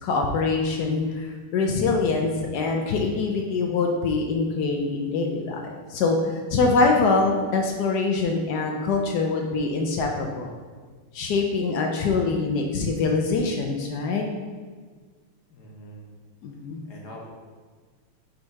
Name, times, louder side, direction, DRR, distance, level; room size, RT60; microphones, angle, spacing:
voice 1, 0.0-10.6 11.1-14.2 16.4-16.8, left 3 dB, 85° left, 2 dB, 0.8 m, -24 dB
voice 2, 15.5-16.0 16.9-17.3, equal, 55° left, -2 dB, 1.4 m, -43 dB
5.4 x 3.9 x 4.6 m, 1.5 s
omnidirectional pair, 2.4 m